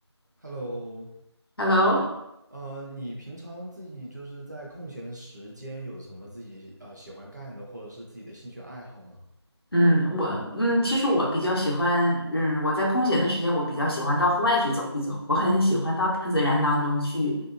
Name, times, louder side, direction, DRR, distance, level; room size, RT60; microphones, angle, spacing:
voice 1, 0.4-1.1 2.5-9.2, right 1 dB, 40° right, -3 dB, 0.7 m, -40 dB
voice 2, 1.6-2.2 9.7-17.4, left 1 dB, 55° left, -3 dB, 1.0 m, -23 dB
3.2 x 2.7 x 2.5 m, 0.81 s
figure-of-eight pair, 175°, 15 cm